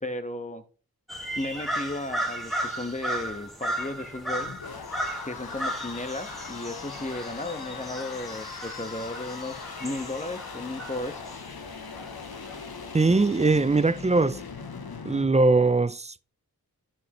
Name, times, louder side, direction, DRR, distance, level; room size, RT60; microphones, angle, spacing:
voice 1, 0.0-0.6 1.3-4.5 5.3-11.5, left 2 dB, 20° left, 1.3 m, -35 dB
sound 1, 1.1-12.9, right 1 dB, ahead, 1.7 m, -35 dB
sound 2, 4.0-15.3, left 5 dB, 85° left, 1.0 m, -40 dB
voice 2, 12.9-14.4 15.0-16.3, right 3 dB, 20° right, 0.4 m, -21 dB
12.0 x 6.4 x 3.1 m
wide cardioid pair, 40°, 36 cm